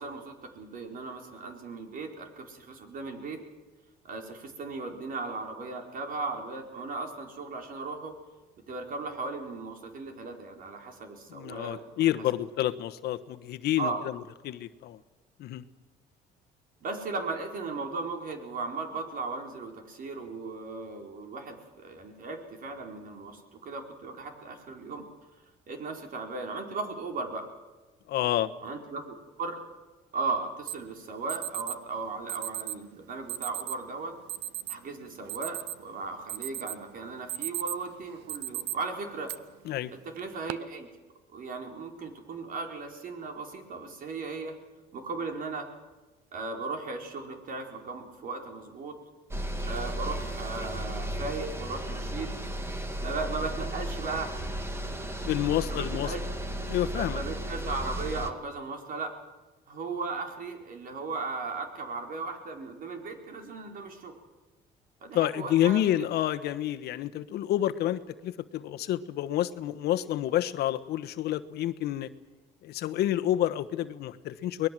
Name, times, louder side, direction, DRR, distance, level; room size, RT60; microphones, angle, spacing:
voice 1, 0.0-3.4 4.0-8.1 8.7-12.1 13.8-14.1 16.8-25.1 25.7-27.5 28.6-29.0 29.4-29.6 30.1-34.1 34.7-39.3 39.9-40.9 41.3-44.5 44.9-45.7 46.3-48.9 49.6-52.3 53.0-54.3 55.7-56.2 56.9-59.1 59.7-64.1 65.0-66.1, right 3 dB, 55° right, 4 dB, 4.4 m, -37 dB
voice 2, 11.3-14.2 14.4-15.0 15.4-15.6 28.1-28.5 39.6-39.9 55.3-56.1 56.7-57.2 65.1-72.1 72.6-74.7, left 12 dB, 75° left, 10 dB, 1.1 m, -29 dB
Alarm, 30.7-30.8 31.3-31.8 32.3-32.8 33.3-33.8 34.3-34.8 35.1-35.9 36.3-36.8 37.1-37.9 38.3-38.7 39.3-39.4 40.2-40.5, right 13 dB, 85° right, 0.8 m, -35 dB
sound 1, 49.3-58.3, right 1 dB, 15° right, 2.2 m, -34 dB
24.0 x 20.0 x 7.6 m, 1.2 s
cardioid pair, 110°, 17 cm